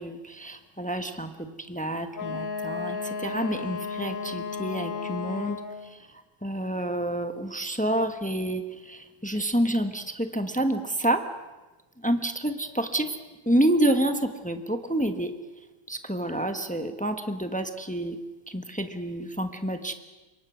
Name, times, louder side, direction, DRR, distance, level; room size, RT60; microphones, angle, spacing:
voice 1, 0.0-3.0 3.2-5.6 6.4-11.2 12.0-13.2 13.5-15.3 15.9-18.2 18.5-19.9, right 1 dB, 5° left, 7 dB, 0.7 m, -28 dB
Wind instrument woodwind instrument, 2.1-5.9, left 5 dB, 60° left, 2.3 m, -33 dB
26.5 x 23.0 x 6.3 m, 1.2 s
omnidirectional pair, 2.4 m